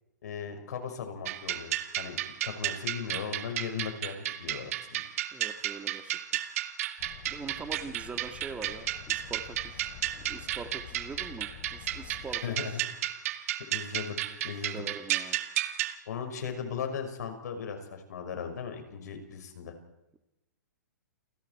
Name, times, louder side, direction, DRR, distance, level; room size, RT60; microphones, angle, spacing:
voice 1, 0.2-5.0 12.4-12.8 13.7-14.2 14.4-14.8 16.1-19.7, left 7 dB, 70° left, 5 dB, 5.7 m, -37 dB
sound 1, 1.3-16.0, right 13 dB, 55° right, 1.9 m, -33 dB
voice 2, 5.3-6.2 7.3-9.9 10.2-12.8 13.2-13.3 14.7-15.4, right 5 dB, 15° right, 8 dB, 1.7 m, -43 dB
sound 2, 7.0-12.4, left 11 dB, 55° left, 3.3 m, -48 dB
29.5 x 20.5 x 4.7 m, 0.92 s
hypercardioid pair, 140°, 9 cm